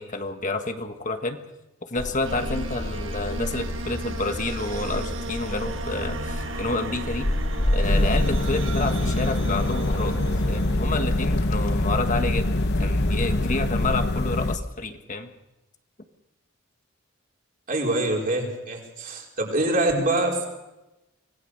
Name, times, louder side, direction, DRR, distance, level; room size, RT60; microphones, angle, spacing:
voice 1, 0.0-1.4 1.8-7.3 7.7-10.1 10.5-15.3, left 2 dB, 40° left, 6 dB, 1.4 m, -29 dB
sound 1, 2.0-14.0, left 1 dB, 70° left, 2.0 m, -30 dB
sound 2, 2.3-11.7, right 2 dB, 65° right, 1.7 m, -35 dB
sound 3, 7.8-14.6, left 2 dB, 55° left, 1.0 m, -25 dB
voice 2, 17.7-20.5, right 2 dB, 45° right, 0 dB, 4.8 m, -25 dB
25.0 x 19.0 x 6.6 m, 0.97 s
head